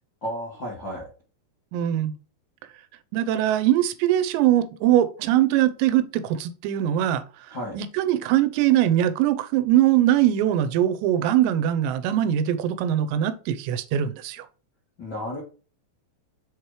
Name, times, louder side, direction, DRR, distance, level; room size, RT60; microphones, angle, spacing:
voice 1, 0.2-1.1 7.5-7.8 15.0-15.4, equal, 65° left, 1.1 m, -32 dB
voice 2, 1.7-2.1 3.1-7.2 7.7-14.5, right 12 dB, 85° right, 2.9 m, -22 dB
7.2 x 3.0 x 4.8 m
omnidirectional pair, 5.0 m